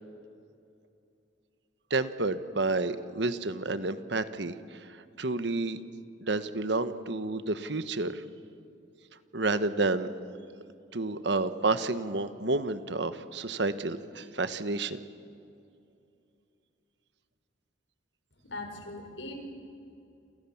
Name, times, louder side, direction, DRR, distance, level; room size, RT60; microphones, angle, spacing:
voice 1, 1.9-4.9 5.2-5.8 6.2-8.2 9.3-10.1 10.9-15.0, right 3 dB, 65° right, 11 dB, 1.3 m, -30 dB
voice 2, 18.4-19.3, left 2 dB, 85° left, 4 dB, 5.4 m, -40 dB
28.5 x 27.5 x 7.3 m, 2.5 s
head